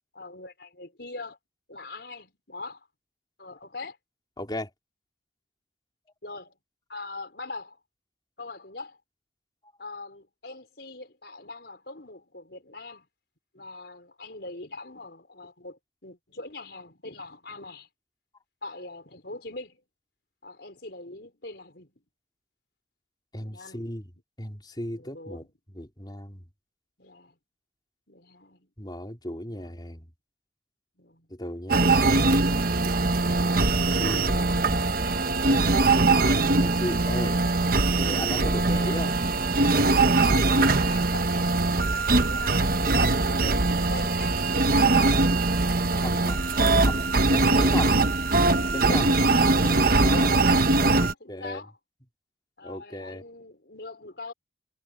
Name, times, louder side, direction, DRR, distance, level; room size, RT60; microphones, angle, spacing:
voice 1, 0.1-1.4 1.7-2.9 3.4-4.0 6.2-6.6 6.9-7.8 8.4-9.0 9.8-13.1 13.5-17.9 18.6-19.8 20.4-21.9 23.4-23.9 24.9-25.4 27.0-27.4 28.1-28.7 29.4-29.8 31.0-31.3 40.2-42.8 43.1-44.4 48.9-50.4 50.7-51.8 52.6-54.3, left 2 dB, 65° left, 4.9 m, -42 dB
voice 2, 4.4-4.7 23.3-24.1 24.4-26.5 28.8-30.1 31.3-31.9 33.6-34.8 36.6-37.4 37.9-39.2 46.0-46.4 46.8-48.0 48.7-49.1 50.0-50.3 50.8-51.6 52.6-53.2, left 1 dB, 25° left, 4.2 m, -36 dB
sound 1, 31.7-51.1, right 3 dB, 50° right, 1.1 m, -22 dB
head